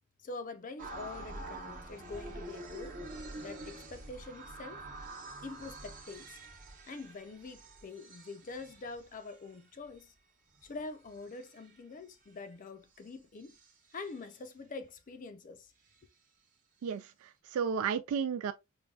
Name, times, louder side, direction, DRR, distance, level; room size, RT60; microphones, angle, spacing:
voice 1, 0.2-3.0 3.4-4.8 5.4-6.4 6.9-10.1 10.6-13.6 13.9-15.7, left 3 dB, 40° left, 0.4 m, -45 dB
sound 1, 0.8-10.0 10.5-11.8 13.1-13.2 13.4-14.4, right 2 dB, 40° right, 0.9 m, -47 dB
voice 2, 16.8-18.5, right 6 dB, 75° right, 0.3 m, -33 dB
5.3 x 2.2 x 2.3 m
head